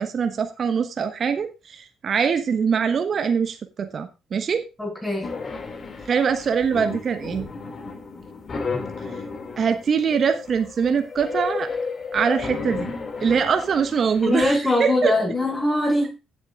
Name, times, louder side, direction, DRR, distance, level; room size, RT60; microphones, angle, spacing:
voice 1, 0.0-4.6 6.1-7.5 9.0-9.1 9.6-11.7 12.1-12.9 13.2-15.1, right 6 dB, 45° right, 8 dB, 1.1 m, -23 dB
voice 2, 4.8-5.3 14.2-16.2, left 1 dB, 10° left, -1 dB, 6.7 m, -22 dB
sound 1, 5.2-14.6, left 4 dB, 40° left, 2.3 m, -33 dB
16.0 x 8.1 x 2.4 m, 0.28 s
figure-of-eight pair, 45°, 0 cm